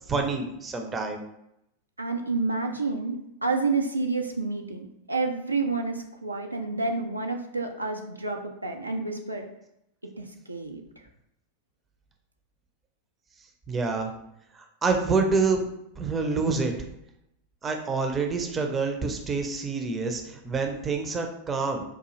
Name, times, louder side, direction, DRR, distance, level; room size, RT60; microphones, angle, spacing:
voice 1, 0.1-1.2 13.7-14.1 14.5-15.6 16.0-16.7 17.6-21.8, right 4 dB, 20° right, 4 dB, 0.5 m, -27 dB
voice 2, 2.0-9.5 10.2-11.0, right 3 dB, 85° right, 4 dB, 0.4 m, -29 dB
4.7 x 2.4 x 3.1 m, 0.80 s
figure-of-eight pair, 90°, 0 cm